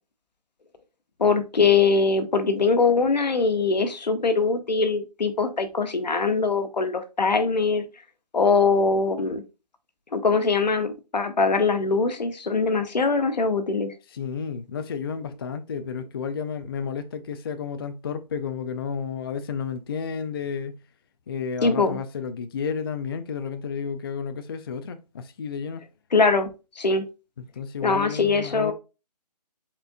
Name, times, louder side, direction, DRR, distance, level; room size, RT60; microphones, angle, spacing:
voice 1, 1.2-7.8 8.3-9.4 10.1-13.9 21.6-22.0 26.1-26.5 26.8-27.1 27.8-28.7, left 4 dB, 90° left, 1.0 m, -22 dB
voice 2, 14.1-20.8 21.3-25.8 27.4-28.7, left 6 dB, 35° left, 0.4 m, -32 dB
4.4 x 4.3 x 2.6 m
hypercardioid pair, 155°, 21 cm